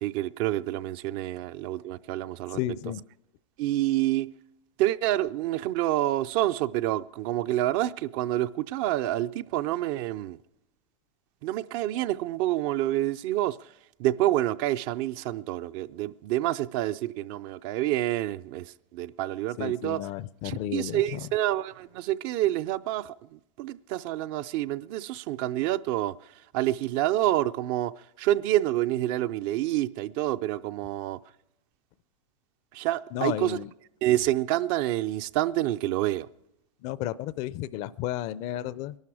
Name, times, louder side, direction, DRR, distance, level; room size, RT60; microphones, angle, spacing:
voice 1, 0.0-2.6 3.6-4.3 4.8-10.4 11.4-13.6 14.0-18.6 18.9-20.0 20.4-23.1 23.6-26.1 26.5-27.9 28.2-31.2 32.8-33.6 34.0-36.3, right 14 dB, 50° right, 0.5 m, -27 dB
voice 2, 2.5-3.0 19.6-21.2 33.1-33.7 36.8-38.9, left 13 dB, 45° left, 0.5 m, -32 dB
21.5 x 12.0 x 4.9 m
hypercardioid pair, 120°, 16 cm